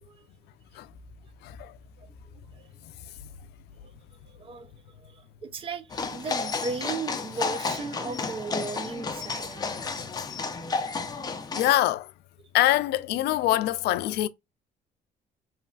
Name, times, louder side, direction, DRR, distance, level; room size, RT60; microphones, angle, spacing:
voice 1, 4.4-9.7 12.4-12.5, right 4 dB, 35° right, 0.6 m, -36 dB
sound 1, 5.9-11.7, left 4 dB, 25° left, 0.5 m, -32 dB
voice 2, 11.5-12.1 12.5-14.3, left 14 dB, 75° left, 0.4 m, -24 dB
3.1 x 2.4 x 2.3 m
cardioid pair, 110°, 17 cm